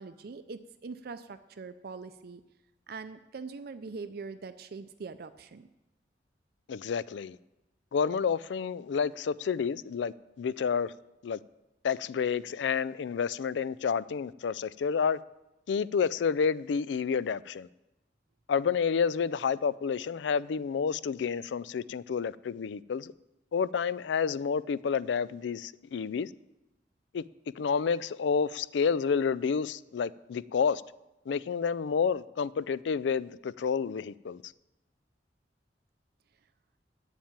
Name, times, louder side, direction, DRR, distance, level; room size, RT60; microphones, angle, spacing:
voice 1, 0.0-2.4 2.9-5.7, right 4 dB, 60° right, 0.5 m, -42 dB
voice 2, 6.7-7.4 7.9-10.9 11.2-11.4 11.8-15.2 15.7-17.7 18.5-23.1 23.5-26.3 27.1-27.2 27.6-30.8 31.3-34.5, left 6 dB, 90° left, 0.4 m, -29 dB
8.8 x 7.4 x 8.9 m
head